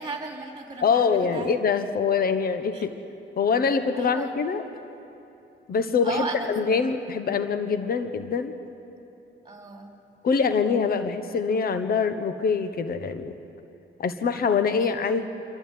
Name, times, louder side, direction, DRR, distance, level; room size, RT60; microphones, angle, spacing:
voice 1, 0.0-1.5 2.7-2.9 3.9-4.3 6.0-6.6 9.4-9.9 14.8-14.9, right 3 dB, 20° right, 1 dB, 3.3 m, -35 dB
voice 2, 0.8-2.9 3.4-4.7 5.7-8.5 10.2-13.4 14.0-15.3, left 5 dB, 50° left, 9 dB, 1.2 m, -24 dB
27.0 x 12.0 x 9.2 m, 2.8 s
cardioid pair, 90°, 20 cm